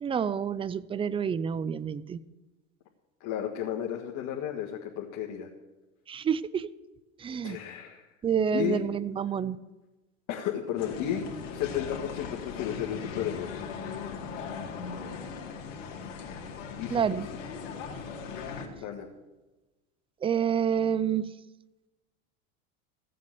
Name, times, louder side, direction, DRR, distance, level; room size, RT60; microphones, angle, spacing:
voice 1, 0.0-2.2 6.1-6.7 7.2-7.6 8.2-9.6 16.9-17.3 20.2-21.3, right 7 dB, 15° right, 17 dB, 0.4 m, -28 dB
voice 2, 3.2-5.5 7.4-8.0 8.5-8.8 10.3-11.2 11.5-13.5 16.8-17.2 18.7-19.1, left 10 dB, 50° left, 0 dB, 1.7 m, -33 dB
sound 1, 10.8-18.7, left 5 dB, 70° left, 2.2 m, -39 dB
15.5 x 7.6 x 7.6 m, 1.1 s
hypercardioid pair, 100°, 40 cm